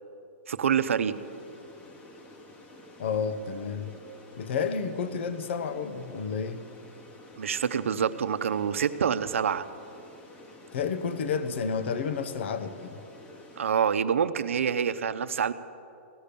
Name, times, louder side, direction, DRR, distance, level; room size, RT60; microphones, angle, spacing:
voice 1, 0.5-1.1 7.4-9.7 13.6-15.5, right 7 dB, 90° right, 10 dB, 0.7 m, -26 dB
sound 1, 1.0-13.7, left 1 dB, 20° left, 1.2 m, -50 dB
voice 2, 3.0-3.9 4.4-6.6 10.7-13.0, left 6 dB, 60° left, 10 dB, 1.0 m, -31 dB
17.0 x 11.5 x 6.8 m, 2.6 s
hypercardioid pair, 155°, 7 cm